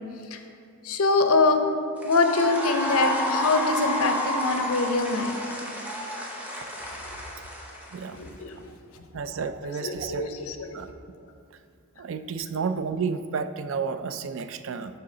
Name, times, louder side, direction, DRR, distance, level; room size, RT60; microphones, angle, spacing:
voice 1, 0.8-1.6 2.0-5.4 8.1-8.6 9.6-10.9, left 3 dB, 85° left, 6 dB, 0.6 m, -24 dB
sound 1, 2.0-8.3, equal, 5° right, 0.7 m, -30 dB
voice 2, 9.1-10.3 10.7-10.9 12.0-15.0, right 5 dB, 65° right, 11 dB, 0.3 m, -31 dB
11.5 x 3.9 x 3.8 m, 2.4 s
head